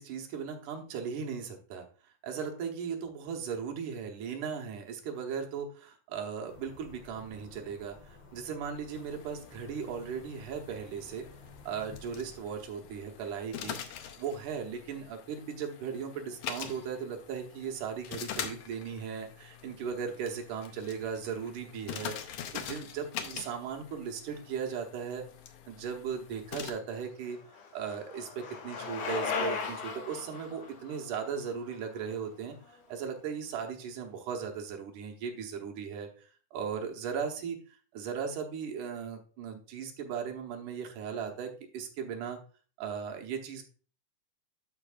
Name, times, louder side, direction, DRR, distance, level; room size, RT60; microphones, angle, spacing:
voice 1, 0.0-11.2 11.7-13.8 14.2-25.2 25.7-27.4 27.7-42.4 42.8-43.6, right 6 dB, 75° right, 3 dB, 2.6 m, -37 dB
sound 1, 6.4-12.4, left 3 dB, 50° left, 1.7 m, -53 dB
sound 2, 8.9-26.7, left 8 dB, 85° left, 1.3 m, -44 dB
Bicycle, 26.7-32.7, left 5 dB, 65° left, 2.2 m, -38 dB
12.0 x 4.7 x 2.4 m, 0.39 s
omnidirectional pair, 3.7 m